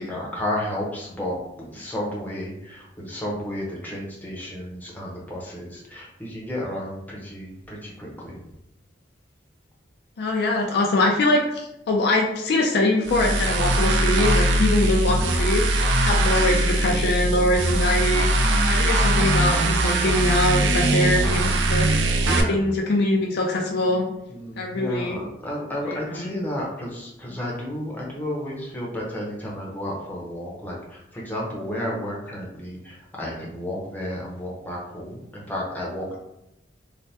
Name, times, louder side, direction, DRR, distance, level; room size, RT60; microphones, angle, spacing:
voice 1, 0.0-8.4 22.2-22.6 24.3-36.2, left 1 dB, 10° left, -4 dB, 0.6 m, -32 dB
voice 2, 10.2-18.3 18.7-24.0 24.6-25.2 26.2-26.3, left 1 dB, 60° left, 0 dB, 0.3 m, -23 dB
sound 1, 13.0-22.4, right 1 dB, 70° right, 0.4 m, -21 dB
3.2 x 2.1 x 2.7 m, 0.83 s
head